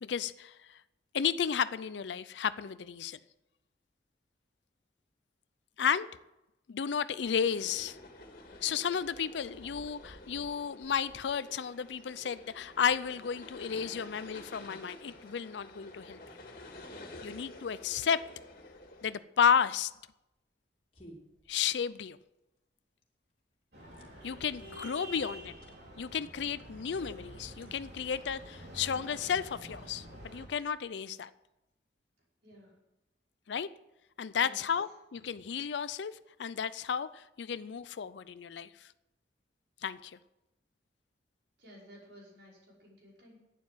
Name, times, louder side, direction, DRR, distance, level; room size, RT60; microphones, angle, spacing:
voice 1, 0.0-0.8 1.1-3.2 5.8-6.1 6.7-8.0 8.6-16.2 17.2-18.2 19.0-19.9 21.5-22.2 24.2-25.5 26.0-30.1 30.3-31.3 33.5-33.7 34.2-38.9 39.8-40.2, left 7 dB, 75° left, 15 dB, 0.5 m, -32 dB
sound 1, 7.2-19.2, left 2 dB, 50° left, 2.1 m, -50 dB
sound 2, 19.4-29.0, equal, 30° left, 2.5 m, -61 dB
sound 3, 23.7-30.4, right 1 dB, 65° right, 4.3 m, -48 dB
voice 2, 32.4-32.7 34.4-34.6 41.6-43.4, equal, 80° right, -3 dB, 5.4 m, -54 dB
11.5 x 9.3 x 7.8 m, 0.94 s
head